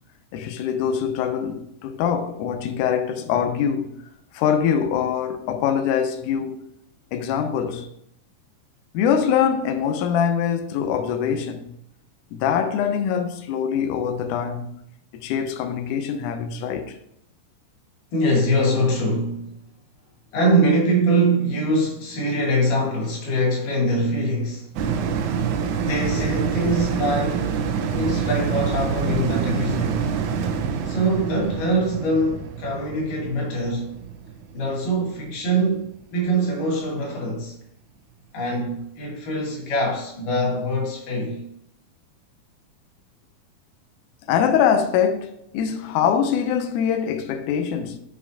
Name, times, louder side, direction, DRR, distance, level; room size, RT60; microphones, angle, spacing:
voice 1, 0.3-4.0 4.3-6.6 7.1-7.9 8.9-11.8 12.3-14.8 15.1-17.0 44.3-48.0, left 8 dB, 85° left, 1.8 m, -23 dB
voice 2, 18.1-19.5 20.3-24.7 25.8-27.5 27.9-30.3 30.9-33.9 34.5-37.6 38.3-41.4, right 1 dB, 65° left, 3.5 m, -23 dB
sound 1, 24.8-35.5 35.9-36.0, right 6 dB, 85° right, 1.7 m, -26 dB
7.3 x 5.9 x 2.8 m
omnidirectional pair, 4.2 m